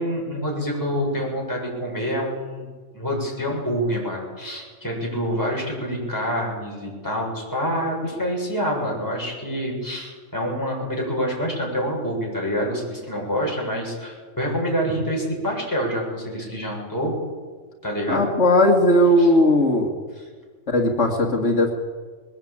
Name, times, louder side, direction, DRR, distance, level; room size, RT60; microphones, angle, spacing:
voice 1, 0.0-2.7 2.9-17.1 17.8-18.3 19.2-19.3, equal, 15° left, -2 dB, 7.2 m, -26 dB
voice 2, 18.1-19.9 20.7-21.7, left 1 dB, 65° left, -1 dB, 2.4 m, -17 dB
21.5 x 19.0 x 8.8 m, 1.5 s
omnidirectional pair, 1.3 m